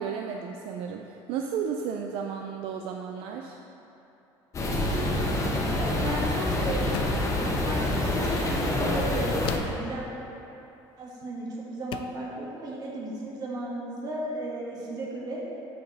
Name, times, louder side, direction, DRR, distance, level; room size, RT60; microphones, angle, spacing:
voice 1, 0.0-3.6, right 7 dB, 70° right, 3 dB, 0.4 m, -33 dB
sound 1, 4.5-9.6, left 1 dB, 30° left, 1.0 m, -27 dB
voice 2, 6.0-10.0 11.0-15.4, right 1 dB, 40° right, -4 dB, 1.5 m, -35 dB
sound 2, 6.9-7.4 9.4-9.9 11.2-11.4 11.9-12.3, left 9 dB, 60° left, 0.4 m, -36 dB
8.1 x 4.6 x 4.2 m, 3.0 s
cardioid pair, 125°, 10 cm